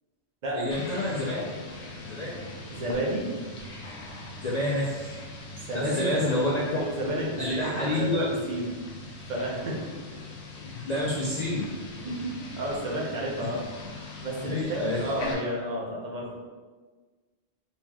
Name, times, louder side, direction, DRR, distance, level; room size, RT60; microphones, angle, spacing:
voice 1, 0.5-1.5 2.0-2.3 4.4-5.1 5.7-6.6 7.4-8.2 10.6-11.7 14.4-15.0, left 1 dB, 50° left, -5 dB, 0.5 m, -28 dB
sound 1, 0.7-15.3, left 2 dB, 90° left, 0.9 m, -41 dB
voice 2, 2.7-3.3 5.7-6.2 6.8-8.7 9.3-9.8 10.6-10.7 12.0-13.7 14.2-16.4, right 1 dB, 45° right, -2 dB, 0.8 m, -31 dB
4.2 x 3.0 x 2.3 m, 1.4 s
omnidirectional pair, 1.1 m